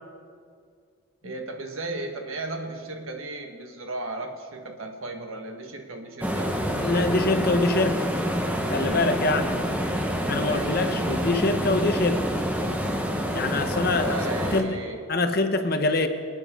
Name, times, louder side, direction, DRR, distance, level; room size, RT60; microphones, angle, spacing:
voice 1, 1.2-6.5 9.6-10.1 10.4-11.0 13.9-15.3, right 2 dB, 75° right, 3 dB, 1.4 m, -36 dB
sound 1, 6.2-14.6, equal, 5° right, 1.0 m, -27 dB
voice 2, 6.7-8.0 8.7-9.6 10.3-12.2 13.3-14.2 14.5-14.8 15.1-16.1, left 2 dB, 45° left, 7 dB, 0.9 m, -24 dB
26.0 x 9.2 x 3.7 m, 2.2 s
head